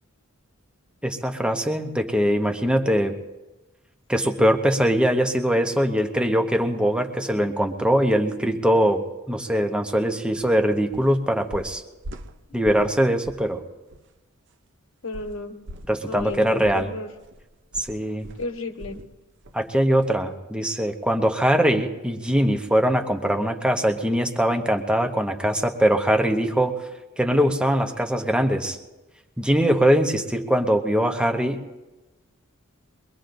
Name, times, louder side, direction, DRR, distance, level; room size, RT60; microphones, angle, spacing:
voice 1, 1.0-3.2 4.1-11.8 12.5-13.6 15.9-16.9 17.8-18.3 19.5-26.8 27.2-28.8 29.4-31.6, equal, 5° right, 4 dB, 0.8 m, -22 dB
sound 1, 10.4-10.6 10.9-11.2 11.5-13.0 13.2-13.5 13.9-14.0 15.1-19.1 19.4-19.7 20.0-20.1, equal, 60° right, 0.7 m, -41 dB
voice 2, 15.0-15.6 16.1-17.1 18.4-19.0, left 3 dB, 70° left, 5 dB, 1.2 m, -33 dB
23.0 x 21.0 x 2.6 m, 1.1 s
head